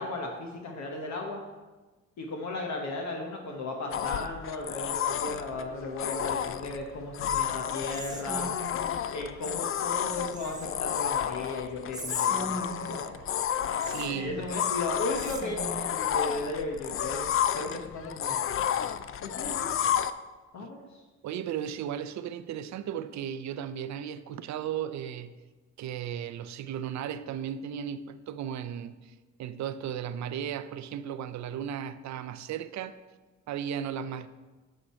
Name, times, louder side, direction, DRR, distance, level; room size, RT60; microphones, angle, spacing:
voice 1, 0.0-1.4 2.2-8.5 9.1-12.6 12.9-13.2 14.1-18.4 19.2-19.9 20.5-21.0, left 2 dB, 65° left, 1.2 m, -36 dB
sound 1, 3.9-20.1, left 9 dB, 45° left, 0.5 m, -31 dB
Whispering, 7.9-9.0 10.3-11.0 11.9-13.1 13.8-14.7 15.1-16.0, right 1 dB, 10° right, 1.2 m, -40 dB
voice 2, 13.9-14.5 20.6-20.7 21.2-25.3 25.8-29.1 29.4-33.0 33.5-34.3, right 9 dB, 65° right, 0.6 m, -35 dB
8.8 x 6.5 x 4.3 m
cardioid pair, 90°, 30 cm